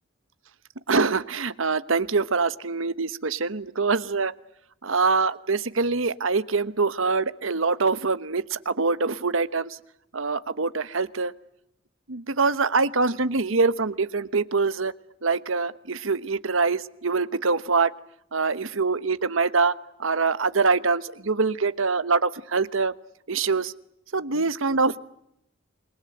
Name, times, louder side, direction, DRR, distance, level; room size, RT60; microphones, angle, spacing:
voice 1, 0.9-4.3 4.8-9.8 10.1-11.3 12.1-14.9 15.2-17.9 18.3-19.7 20.0-22.9 23.3-23.7 24.1-25.0, right 4 dB, 75° right, 14 dB, 1.1 m, -24 dB
28.0 x 22.0 x 7.9 m, 0.78 s
head